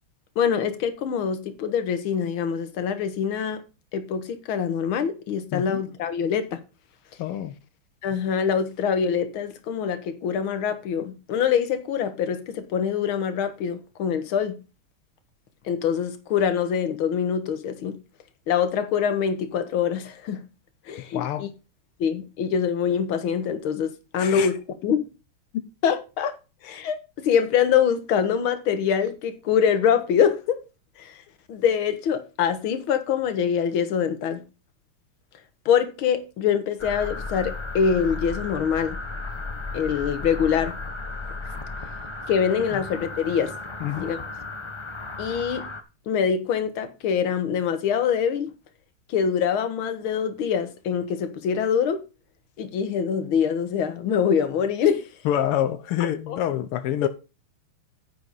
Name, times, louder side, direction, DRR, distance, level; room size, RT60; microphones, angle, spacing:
voice 1, 0.4-3.6 3.9-6.6 8.0-14.6 15.7-18.0 18.5-20.4 20.9-21.5 22.0-25.1 25.8-26.4 26.6-30.6 31.0-31.2 31.5-34.4 35.7-39.0 39.7-40.8 42.3-43.5 44.0-44.2 45.2-45.6 46.1-48.5 49.1-52.0 52.6-55.0 56.3-56.4 57.0-57.1, left 7 dB, 70° left, 2.0 m, -24 dB
voice 2, 5.5-5.8 7.2-7.5 21.1-21.4 24.2-24.5 42.7-42.8 43.8-44.1 55.2-57.1, left 11 dB, 90° left, 1.7 m, -27 dB
sound 1, 36.8-45.8, left 3 dB, 30° left, 0.5 m, -34 dB
9.9 x 9.0 x 4.0 m
omnidirectional pair, 2.4 m